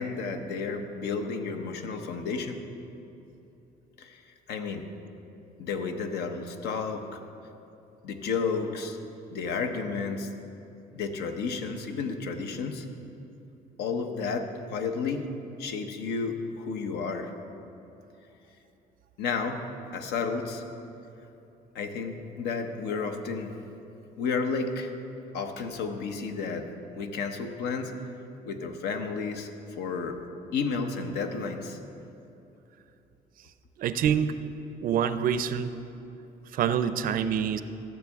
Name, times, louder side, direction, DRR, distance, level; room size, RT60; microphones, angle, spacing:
voice 1, 0.0-2.6 4.0-4.2 4.5-4.9 5.6-7.2 8.0-9.0 9.3-10.3 10.9-12.9 13.8-15.2 15.6-17.3 19.2-19.6 19.9-20.6 21.7-23.5 24.2-24.9 25.3-26.7 27.0-27.9 28.5-29.5 29.8-30.2 30.5-31.8, left 5 dB, 75° left, 6 dB, 0.8 m, -32 dB
voice 2, 33.8-34.4 34.8-35.7 36.5-37.6, right 8 dB, 55° right, 12 dB, 0.5 m, -26 dB
13.5 x 7.3 x 3.5 m, 2.9 s
cardioid pair, 110°, 17 cm